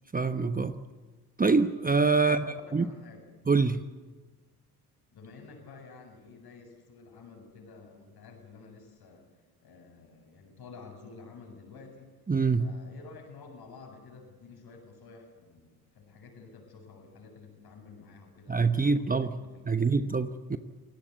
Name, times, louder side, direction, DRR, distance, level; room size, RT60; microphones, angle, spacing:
voice 1, 0.1-0.8 1.4-2.4 2.7-2.9 3.5-3.8 12.3-12.7 18.5-19.3 19.7-20.6, right 4 dB, 20° right, 1.1 m, -25 dB
voice 2, 2.2-3.3 5.1-9.3 9.6-12.2 12.6-20.1, left 4 dB, 55° left, 7.9 m, -50 dB
28.5 x 17.5 x 8.4 m
hypercardioid pair, 60°, 46 cm